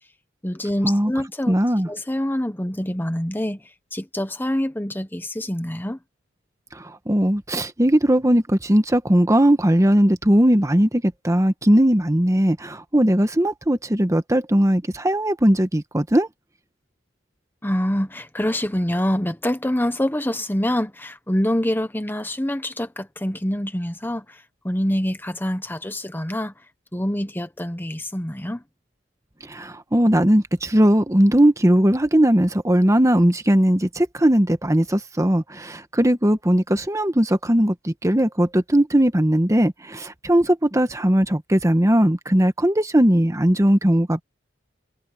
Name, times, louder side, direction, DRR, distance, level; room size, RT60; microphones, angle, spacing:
voice 1, 0.4-1.6 1.9-3.6 3.9-6.0 17.6-26.5 26.9-28.6, left 1 dB, 10° left, 1.1 m, -25 dB
voice 2, 1.5-1.9 6.8-16.3 29.5-44.2, equal, 15° right, 1.3 m, -19 dB
head